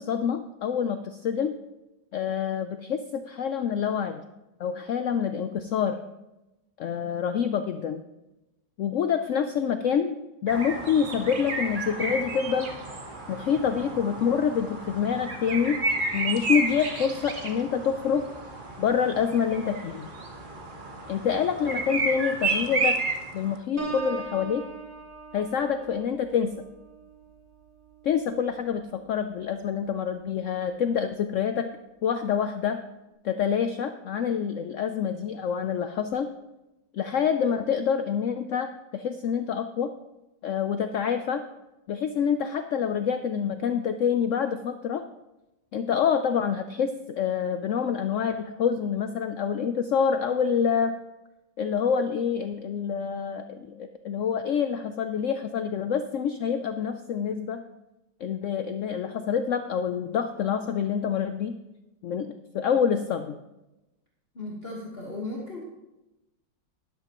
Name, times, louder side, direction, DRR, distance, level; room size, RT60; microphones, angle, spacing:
voice 1, 0.0-1.6 2.1-4.2 4.6-6.0 6.8-8.0 8.8-12.7 13.3-15.8 16.1-18.3 18.8-20.1 21.1-23.0 23.3-24.6 25.3-26.5 28.0-31.7 32.0-32.8 33.2-36.3 36.9-39.9 40.4-41.4 41.9-45.0 45.7-51.0 51.6-57.6 58.2-61.6 62.0-63.4, left 7 dB, 90° left, 8 dB, 0.6 m, -27 dB
sound 1, 10.5-23.6, right 3 dB, 35° right, 1.0 m, -32 dB
Piano, 23.8-29.4 29.9-30.2, right 4 dB, 50° right, 2.5 m, -41 dB
voice 2, 64.3-65.6, left 2 dB, 35° left, -4 dB, 1.6 m, -36 dB
12.5 x 11.5 x 3.0 m, 0.98 s
omnidirectional pair, 1.9 m